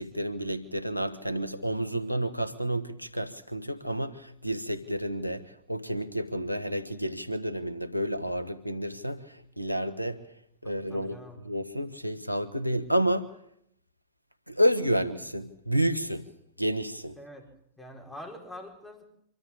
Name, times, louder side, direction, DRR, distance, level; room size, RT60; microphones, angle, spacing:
voice 1, 0.0-10.3 10.6-13.4 14.5-16.3 16.6-17.2, equal, 90° left, 11 dB, 1.4 m, -30 dB
voice 2, 10.9-11.4 17.2-17.5 17.8-19.1, left 1 dB, 5° left, 1 dB, 4.7 m, -44 dB
25.0 x 13.5 x 8.8 m, 0.72 s
figure-of-eight pair, 90°, 0 cm